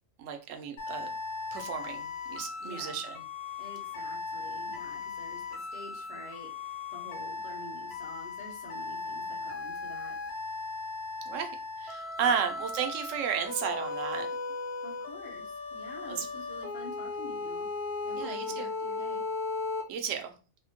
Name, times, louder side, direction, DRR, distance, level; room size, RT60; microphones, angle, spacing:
voice 1, 0.2-1.1 1.5-3.2 11.3-11.5 11.8-14.3 16.1-16.3 18.2-18.7 19.9-20.3, right 7 dB, 90° right, 5 dB, 1.0 m, -33 dB
sound 1, 0.8-19.8, left 4 dB, 60° left, 1.0 m, -37 dB
voice 2, 2.6-3.0 3.6-10.2 12.2-12.5 14.8-17.7 18.0-19.2, left 1 dB, 35° left, -2 dB, 0.9 m, -48 dB
3.5 x 2.1 x 2.8 m, 0.35 s
omnidirectional pair, 1.3 m